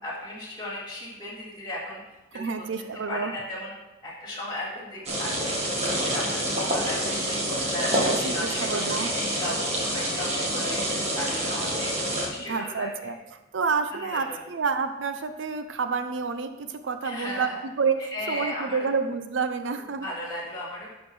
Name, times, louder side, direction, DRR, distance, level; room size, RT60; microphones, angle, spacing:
voice 1, 0.0-2.0 2.3-3.7 4.0-5.6 5.9-12.0 12.3-13.1 13.9-14.4 17.0-17.6 18.0-18.9 20.0-20.9, left 1 dB, 20° left, -8 dB, 2.9 m, -36 dB
voice 2, 2.3-3.3 7.9-9.1 12.5-13.2 13.5-20.1, right 5 dB, 65° right, 9 dB, 0.5 m, -29 dB
sound 1, 5.1-12.3, right 1 dB, 30° right, 1.4 m, -27 dB
11.0 x 6.2 x 3.3 m, 1.1 s
head